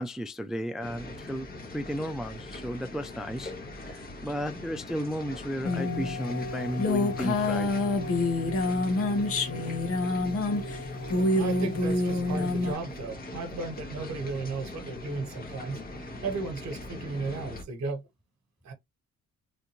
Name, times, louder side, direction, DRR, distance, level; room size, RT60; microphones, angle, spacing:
voice 1, 0.0-3.5 3.8-7.7, equal, ahead, 0.3 m, -34 dB
sound 1, 0.8-17.6, left 2 dB, 30° left, 1.3 m, -42 dB
sound 2, 5.6-12.7, left 2 dB, 50° left, 1.1 m, -27 dB
voice 2, 11.0-18.0 18.6-18.7, right 3 dB, 60° right, 1.3 m, -35 dB
3.2 x 2.6 x 3.0 m
cardioid pair, 90°, 30 cm